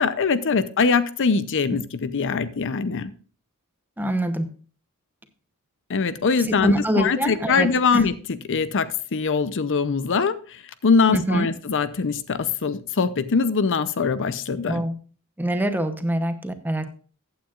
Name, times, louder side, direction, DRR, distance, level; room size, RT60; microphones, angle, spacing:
voice 1, 0.0-3.1 5.9-8.9 9.1-14.8, left 5 dB, 60° left, 14 dB, 0.6 m, -22 dB
voice 2, 4.0-4.5 6.6-8.0 11.1-11.5 14.7-14.9 15.4-16.9, right 1 dB, 10° right, 8 dB, 0.9 m, -25 dB
14.5 x 8.9 x 2.5 m, 0.39 s
head